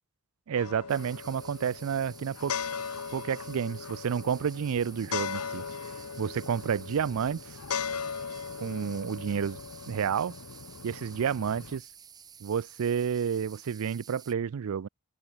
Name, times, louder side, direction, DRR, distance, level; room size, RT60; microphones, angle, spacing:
voice 1, 0.5-2.7 3.1-5.6 6.2-7.6 8.6-9.6 9.9-10.3 10.8-11.8 12.4-14.9, right 7 dB, 75° right, 0.4 m, -30 dB
sound 1, 0.6-11.8, left 6 dB, 90° left, 0.9 m, -38 dB
sound 2, 0.9-14.3, right 7 dB, 20° right, 0.5 m, -51 dB
open air
head